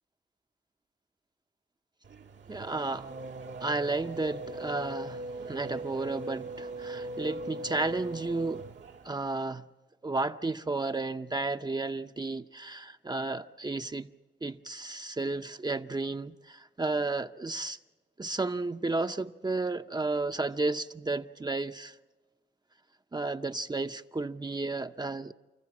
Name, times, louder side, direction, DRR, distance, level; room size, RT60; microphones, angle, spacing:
Race car auto racing / Accelerating revving vroom, 2.0-9.3, right 2 dB, 90° right, 1.6 m, -40 dB
voice 1, 2.5-3.1 3.6-8.6 9.0-9.6 10.0-14.1 14.4-17.8 18.2-22.0 23.1-25.3, right 3 dB, 25° right, 0.6 m, -32 dB
29.5 x 14.5 x 7.3 m
cardioid pair, 75°, 18 cm